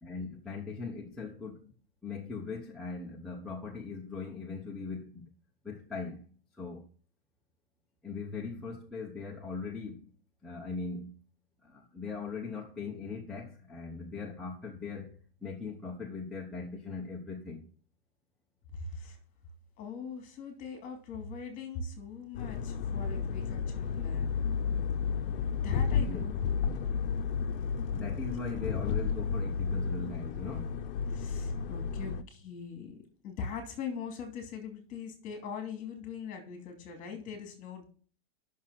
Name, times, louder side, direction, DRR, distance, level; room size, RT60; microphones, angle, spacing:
voice 1, 0.0-1.7 2.0-5.3 5.6-6.9 8.0-10.1 10.4-11.2 11.6-17.6 26.0-26.3 27.9-30.8, left 4 dB, ahead, 1.0 m, -40 dB
voice 2, 18.7-19.2 19.8-26.7 31.1-37.9, left 5 dB, 25° left, 2.6 m, -42 dB
sound 1, 22.3-32.2, left 6 dB, 65° left, 0.8 m, -32 dB
9.4 x 6.4 x 5.9 m
supercardioid pair, 160°, 29 cm